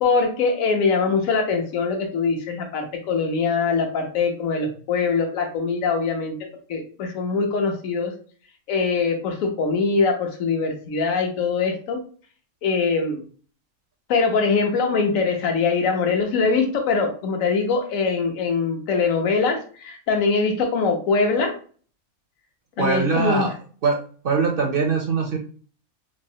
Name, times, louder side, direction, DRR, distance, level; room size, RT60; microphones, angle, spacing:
voice 1, 0.0-6.4 6.7-8.1 8.7-12.0 12.6-13.2 14.1-21.5 22.8-23.5, left 4 dB, 70° left, 3 dB, 1.2 m, -22 dB
voice 2, 22.8-23.5 23.8-24.0 24.2-25.4, right 4 dB, 60° right, 3 dB, 0.6 m, -22 dB
3.5 x 3.1 x 2.7 m, 0.42 s
omnidirectional pair, 1.5 m